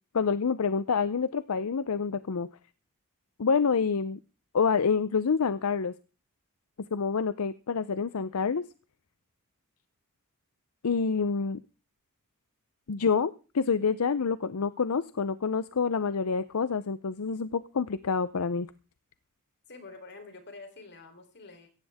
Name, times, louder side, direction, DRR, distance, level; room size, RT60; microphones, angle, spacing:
voice 1, 0.1-2.5 3.4-4.2 4.5-5.9 6.9-8.6 10.8-11.6 12.9-18.7, left 5 dB, 75° left, 15 dB, 0.6 m, -27 dB
voice 2, 19.7-21.7, left 3 dB, 50° left, 6 dB, 3.6 m, -47 dB
17.0 x 14.5 x 3.5 m, 0.33 s
head